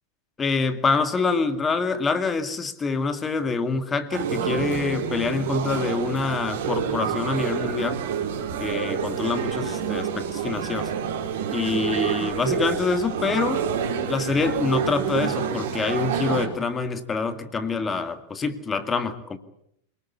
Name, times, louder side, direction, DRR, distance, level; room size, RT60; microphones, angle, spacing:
voice 1, 0.4-8.0 8.6-10.9 11.5-13.7 14.1-19.4, left 4 dB, 20° left, 10 dB, 2.2 m, -26 dB
sound 1, 4.1-16.5, right 7 dB, 55° right, 4.9 m, -28 dB
28.0 x 19.5 x 8.5 m, 0.73 s
figure-of-eight pair, 90°, 0 cm